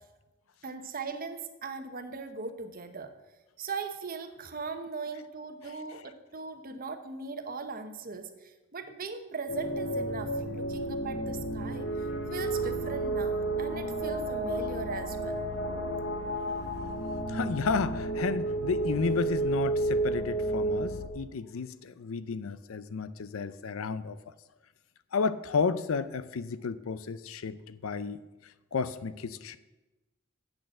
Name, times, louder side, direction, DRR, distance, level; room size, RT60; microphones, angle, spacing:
voice 1, 0.6-3.1 3.6-15.4, right 4 dB, 45° right, 7 dB, 0.9 m, -39 dB
sound 1, 9.5-21.1, right 2 dB, 60° left, 1.4 m, -31 dB
voice 2, 17.3-24.2 25.1-28.2 28.7-29.6, left 5 dB, 90° left, 14 dB, 0.5 m, -32 dB
8.1 x 6.7 x 7.6 m, 1.1 s
head